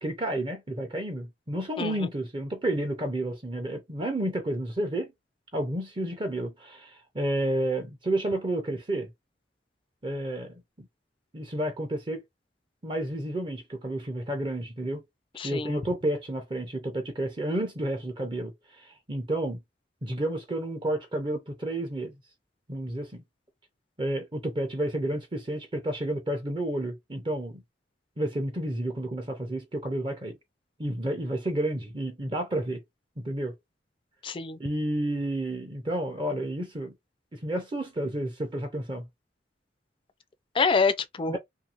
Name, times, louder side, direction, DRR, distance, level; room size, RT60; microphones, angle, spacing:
voice 1, 0.0-5.1 5.5-9.1 10.0-10.9 11.3-12.2 12.8-15.0 15.4-19.6 20.0-22.1 22.7-23.2 24.0-27.6 28.2-30.4 30.8-32.8 33.2-33.5 34.6-36.9 37.3-39.1 41.3-41.4, right 1 dB, 25° right, 0.6 m, -31 dB
voice 2, 1.8-2.1 15.3-15.8 34.2-34.6 40.5-41.4, left 4 dB, 30° left, 0.3 m, -26 dB
2.7 x 2.6 x 2.9 m
head